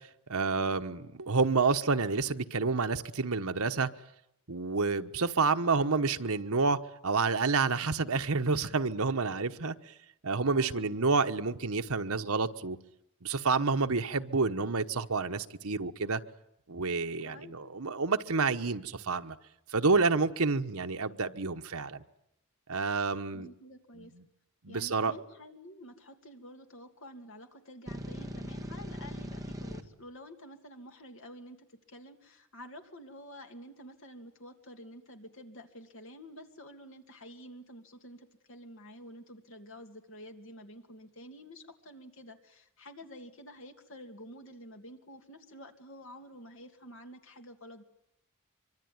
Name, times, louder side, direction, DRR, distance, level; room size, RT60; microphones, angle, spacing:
voice 1, 0.3-3.9 4.5-6.8 7.0-9.7 10.2-12.8 13.2-16.2 16.7-19.3 19.7-22.0 22.7-23.5 24.6-25.1, right 4 dB, 80° right, 7 dB, 1.2 m, -29 dB
voice 2, 10.5-11.1 17.2-17.6 23.3-24.1 24.7-47.8, equal, 60° left, 5 dB, 2.7 m, -49 dB
sound 1, 27.9-29.8, equal, 15° right, 2.0 m, -39 dB
24.5 x 24.5 x 9.6 m, 0.80 s
head